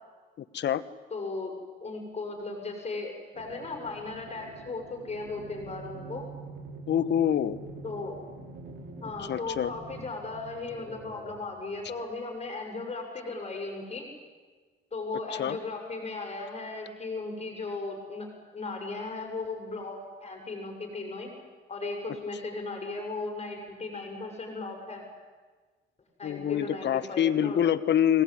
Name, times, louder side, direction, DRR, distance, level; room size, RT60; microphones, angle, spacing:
voice 1, 0.4-0.8 6.9-7.6 9.2-9.7 15.4-15.6 26.2-28.2, left 9 dB, 60° left, 15 dB, 1.2 m, -26 dB
voice 2, 1.1-6.3 7.8-8.2 9.0-14.1 14.9-21.3 21.7-25.1 26.2-27.6, left 3 dB, 30° left, 2 dB, 7.3 m, -36 dB
sound 1, 3.3-12.1, right 3 dB, 55° right, 5.6 m, -46 dB
22.5 x 19.5 x 9.8 m, 1.4 s
cardioid pair, 90°, 20 cm